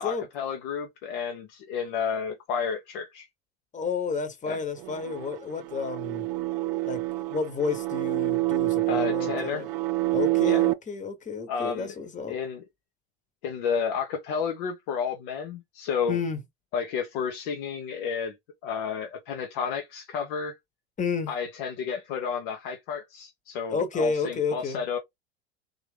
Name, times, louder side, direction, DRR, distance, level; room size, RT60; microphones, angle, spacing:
voice 1, 0.0-3.3 4.5-4.6 8.9-9.6 10.4-10.6 11.5-11.9 12.3-12.6 13.4-16.2 16.7-18.3 18.6-20.6 21.3-25.0, left 6 dB, 60° left, 0.8 m, -31 dB
voice 2, 3.7-6.3 6.8-9.7 10.1-12.4 16.1-16.4 21.0-21.3 23.7-24.8, left 5 dB, 25° left, 1.2 m, -31 dB
sound 1, 4.8-10.7, right 20 dB, 55° right, 0.6 m, -27 dB
3.6 x 2.9 x 3.4 m
hypercardioid pair, 75°, 31 cm